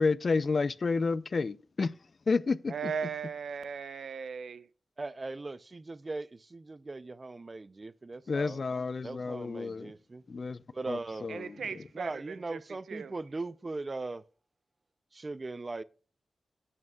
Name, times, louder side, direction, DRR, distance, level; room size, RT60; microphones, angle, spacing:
voice 1, 0.0-1.9 2.3-2.7 8.3-9.9 10.3-11.8, left 4 dB, 40° left, 0.3 m, -30 dB
voice 2, 2.7-4.7 11.3-12.6 12.9-13.1, right 6 dB, 75° right, 0.6 m, -37 dB
voice 3, 5.0-8.6 9.0-10.2 10.7-11.3 11.9-14.2 15.1-15.8, right 3 dB, 25° right, 0.4 m, -39 dB
11.0 x 8.7 x 2.3 m
wide cardioid pair, 175°, 0 cm